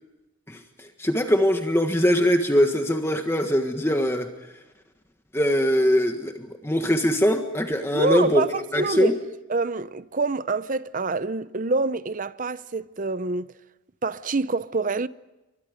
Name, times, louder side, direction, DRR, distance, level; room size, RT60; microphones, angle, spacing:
voice 1, 0.5-4.3 5.3-8.5 8.7-9.1, equal, 10° left, 1.5 m, -22 dB
voice 2, 7.9-9.2 9.5-13.5 14.0-15.1, right 3 dB, 40° right, 0.7 m, -26 dB
30.0 x 24.5 x 5.2 m
head